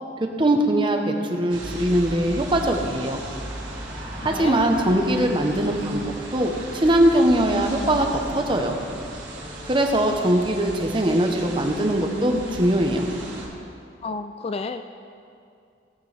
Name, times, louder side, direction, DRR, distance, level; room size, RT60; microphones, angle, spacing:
voice 1, 0.4-3.2 4.2-6.0 6.3-8.8 9.6-13.1, right 1 dB, 25° right, 3 dB, 0.9 m, -21 dB
sound 1, 1.5-13.5, right 1 dB, 70° right, 2.8 m, -36 dB
voice 2, 4.1-4.6 14.0-14.9, left 4 dB, 30° left, 9 dB, 0.3 m, -31 dB
17.5 x 9.0 x 3.4 m, 2.5 s
head